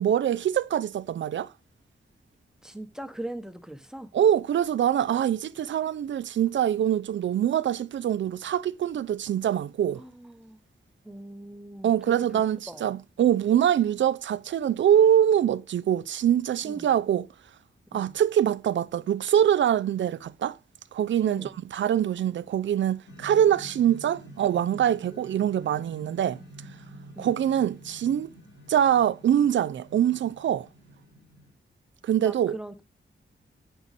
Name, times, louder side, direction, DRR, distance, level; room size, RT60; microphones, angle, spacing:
voice 1, 0.0-1.5 4.1-10.0 11.8-17.3 17.9-20.6 20.9-26.4 27.2-28.3 28.7-30.7 32.0-32.6, right 10 dB, 75° right, 0.4 m, -24 dB
voice 2, 2.6-4.1 9.9-10.6 11.0-12.9 16.6-17.0 17.9-18.2 21.2-21.6 25.1-25.2 27.2-27.3 32.2-32.8, right 1 dB, 5° right, 0.8 m, -41 dB
sound 1, 23.1-31.5, equal, 80° left, 2.9 m, -48 dB
8.5 x 6.2 x 4.0 m
wide cardioid pair, 125°, 19 cm